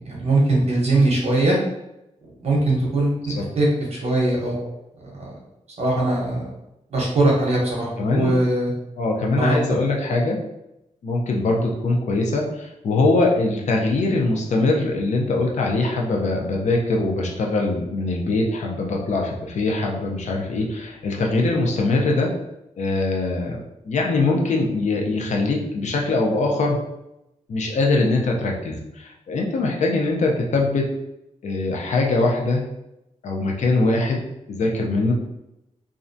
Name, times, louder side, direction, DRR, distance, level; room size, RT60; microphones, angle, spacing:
voice 1, 0.0-1.6 2.4-4.7 5.2-5.3 5.8-6.5 6.9-8.7 9.4-9.6, right 2 dB, 60° right, -3 dB, 0.8 m, -21 dB
voice 2, 8.0-8.4 9.0-10.4 11.0-22.3 22.8-23.6 23.8-26.8 27.5-30.9 31.4-32.6 33.2-34.2 34.5-35.1, left 2 dB, 70° left, 0 dB, 0.5 m, -22 dB
2.4 x 2.1 x 2.5 m, 0.88 s
wide cardioid pair, 135°, 13 cm